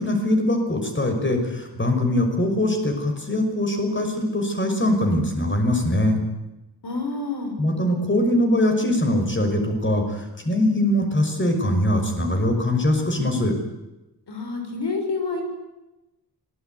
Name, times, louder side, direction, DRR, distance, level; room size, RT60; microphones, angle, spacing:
voice 1, 0.0-6.2 7.6-13.5, left 1 dB, 30° left, 4 dB, 5.9 m, -22 dB
voice 2, 6.8-7.5 14.3-15.4, left 3 dB, 85° left, 4 dB, 6.5 m, -28 dB
26.5 x 19.5 x 9.6 m, 1.0 s
wide cardioid pair, 115°, 39 cm